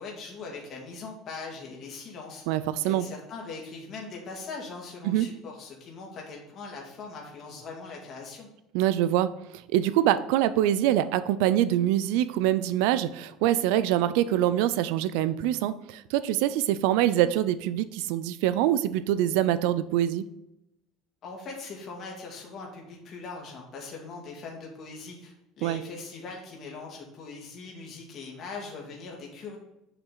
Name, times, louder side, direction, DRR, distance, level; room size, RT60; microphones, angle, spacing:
voice 1, 0.0-2.4 2.8-8.5 21.2-29.6, left 4 dB, 35° left, -1 dB, 2.2 m, -41 dB
voice 2, 2.5-3.1 5.0-5.3 8.7-9.3 9.7-20.3 25.6-25.8, right 12 dB, 75° right, 14 dB, 0.5 m, -24 dB
7.3 x 5.7 x 3.9 m, 0.88 s
cardioid pair, 165°, 0 cm